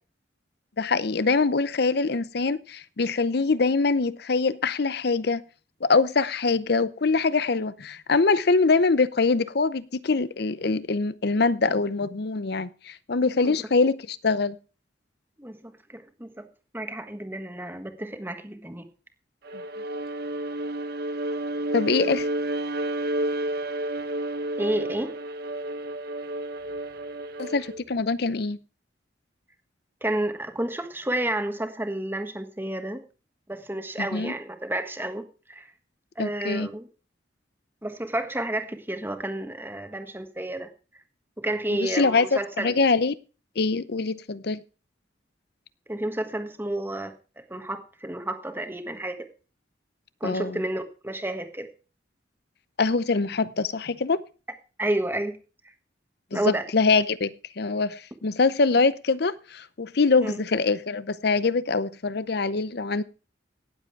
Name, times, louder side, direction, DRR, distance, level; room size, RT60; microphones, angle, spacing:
voice 1, 0.8-5.4 5.8-14.6 21.7-22.3 27.4-28.6 34.0-34.3 36.2-36.7 41.7-43.1 43.6-44.6 50.2-50.6 52.8-54.2 56.3-63.0, left 4 dB, 60° left, 0.7 m, -24 dB
voice 2, 15.4-16.5 16.7-18.9 24.6-25.1 30.0-33.0 33.5-35.7 36.2-36.9 37.8-40.7 41.4-42.8 45.9-49.3 50.2-51.7 54.8-55.4 56.3-56.7 60.2-60.4, right 1 dB, 10° right, 1.4 m, -31 dB
Bowed string instrument, 19.4-27.8, right 1 dB, 55° right, 1.1 m, -31 dB
17.5 x 7.7 x 4.7 m
head